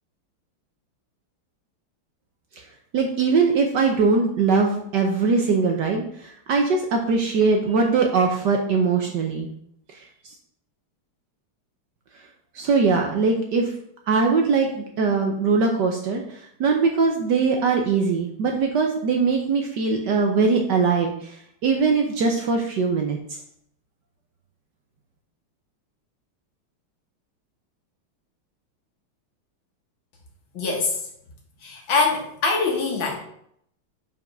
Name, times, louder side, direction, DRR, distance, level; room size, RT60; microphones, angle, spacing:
voice 1, 2.9-9.5 12.5-13.7 14.1-16.2 16.6-21.3 21.6-23.2, right 4 dB, 65° right, 2 dB, 1.2 m, -21 dB
voice 2, 30.5-31.0 31.6-33.2, left 4 dB, 60° left, 0 dB, 2.1 m, -23 dB
5.2 x 5.2 x 5.3 m, 0.70 s
omnidirectional pair, 2.4 m